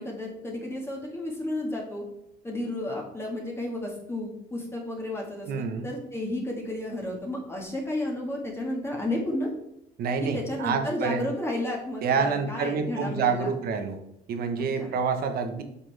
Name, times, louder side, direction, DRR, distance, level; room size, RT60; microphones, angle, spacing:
voice 1, 0.0-2.0 2.4-9.5 10.2-13.5 14.6-14.9, left 1 dB, 15° left, -1 dB, 2.0 m, -32 dB
voice 2, 5.5-5.9 10.0-11.2 12.0-14.0 14.3-15.6, right 5 dB, 65° right, 7 dB, 1.3 m, -27 dB
8.4 x 6.0 x 3.5 m, 0.78 s
cardioid pair, 110°, 17 cm